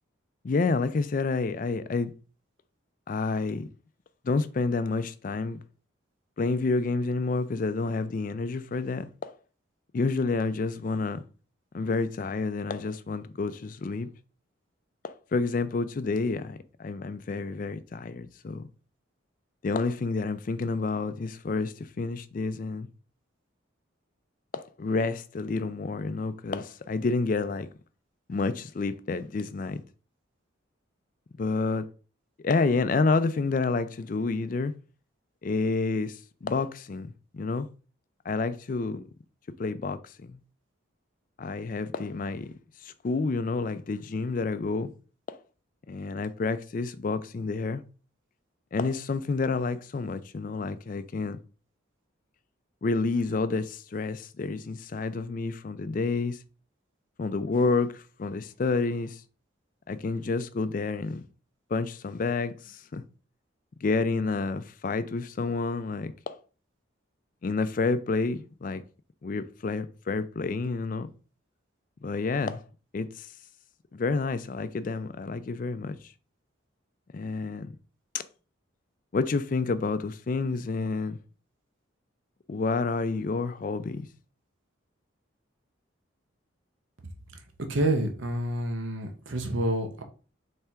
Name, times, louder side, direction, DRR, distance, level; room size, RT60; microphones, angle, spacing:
voice 1, 0.4-2.1 3.1-3.7 4.2-5.6 6.4-9.3 9.9-11.2 11.7-14.1 15.0-18.6 19.6-22.9 24.5-27.7 28.3-29.8 31.4-31.8 32.4-34.7 35.4-37.7 38.3-39.0 39.6-40.4 41.4-42.5 42.8-44.9 45.3-45.4 45.9-47.8 48.7-51.4 52.8-56.4 57.2-59.2 59.9-61.2 61.7-63.0 63.8-66.4 67.4-68.8 69.2-71.1 72.0-72.6 72.9-73.3 73.9-76.0 77.1-77.7 78.1-78.2 79.1-81.2 82.5-84.1, left 3 dB, 40° left, 0.3 m, -29 dB
voice 2, 87.7-90.0, right 1 dB, 70° right, 0.8 m, -28 dB
4.3 x 3.3 x 3.5 m
head